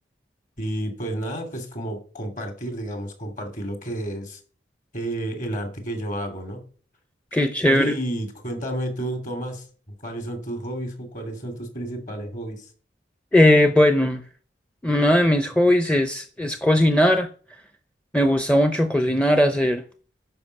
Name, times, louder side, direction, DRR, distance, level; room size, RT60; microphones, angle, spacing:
voice 1, 0.6-4.4 4.9-6.6 7.7-12.7, right 1 dB, 45° left, 5 dB, 2.7 m, -31 dB
voice 2, 7.3-7.9 13.3-14.2 14.8-17.3 18.1-19.8, left 1 dB, 5° left, 7 dB, 0.6 m, -18 dB
11.0 x 5.3 x 6.6 m, 0.41 s
head